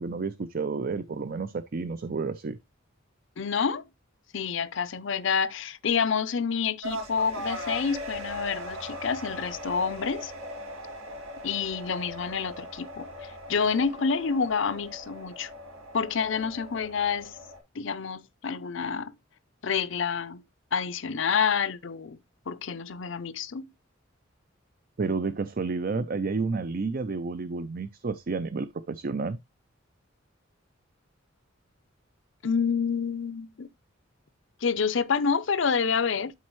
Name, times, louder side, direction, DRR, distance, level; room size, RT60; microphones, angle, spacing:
voice 1, 0.0-2.6 25.0-29.4, right 4 dB, 45° right, 0.5 m, -30 dB
voice 2, 3.4-3.9 4.3-10.3 11.4-15.5 15.9-17.4 17.7-19.1 19.6-20.4 20.7-22.2 22.5-23.7 32.4-33.7 34.6-36.3, left 6 dB, 65° left, 0.6 m, -28 dB
sound 1, 6.8-17.6, equal, 90° right, 4.3 m, -39 dB
12.0 x 4.2 x 3.1 m
head